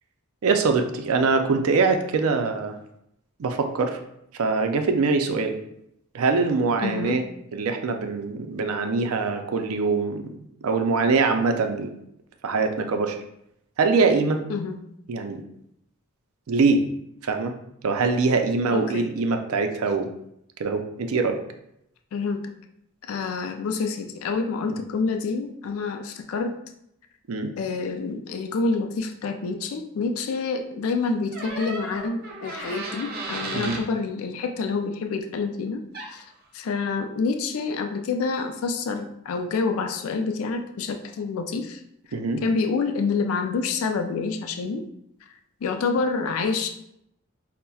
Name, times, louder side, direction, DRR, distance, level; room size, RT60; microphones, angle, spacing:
voice 1, 0.4-2.8 3.4-4.0 4.3-5.6 6.1-7.2 7.5-11.9 12.4-13.2 13.8-14.4 15.1-15.4 16.5-16.8 17.2-17.5 17.8-20.1 20.6-21.4 24.7-24.8 27.3-27.5 33.5-33.8 42.1-42.4, right 4 dB, 90° right, 5 dB, 0.4 m, -23 dB
voice 2, 6.8-7.2 14.5-14.8 18.7-19.1 22.1-22.5 23.1-26.6 27.6-36.3 36.5-41.8 42.4-44.9 45.6-46.7, left 4 dB, 75° left, 6 dB, 0.3 m, -27 dB
sound 1, 31.3-33.9 35.9-36.2, right 2 dB, 45° right, 0.6 m, -34 dB
5.4 x 2.1 x 2.3 m, 0.77 s
head